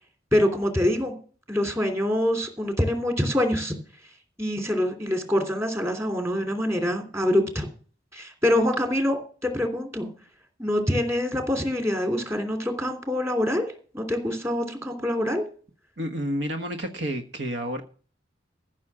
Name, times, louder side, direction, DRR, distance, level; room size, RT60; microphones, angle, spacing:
voice 1, 0.3-1.1 1.5-3.7 4.4-7.7 8.1-10.1 10.6-13.7 13.9-15.4, left 1 dB, 15° right, 5 dB, 3.0 m, -25 dB
voice 2, 16.0-17.8, equal, 65° right, 6 dB, 1.4 m, -30 dB
15.0 x 6.3 x 7.4 m, 0.41 s
head